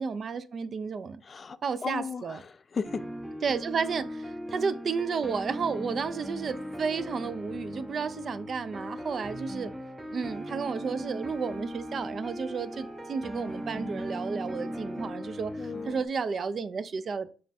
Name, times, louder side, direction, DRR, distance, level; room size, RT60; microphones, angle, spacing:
voice 1, 0.0-1.2 1.6-2.4 3.4-9.7 10.1-17.3, right 5 dB, 55° right, 0.3 m, -32 dB
voice 2, 1.2-3.1 15.6-16.0, left 5 dB, 45° left, 0.3 m, -36 dB
sound 1, 2.8-16.1, equal, 10° right, 0.5 m, -38 dB
Wind instrument woodwind instrument, 10.3-15.2, right 4 dB, 85° right, 0.8 m, -51 dB
3.6 x 2.2 x 4.0 m
supercardioid pair, 60°, 0 cm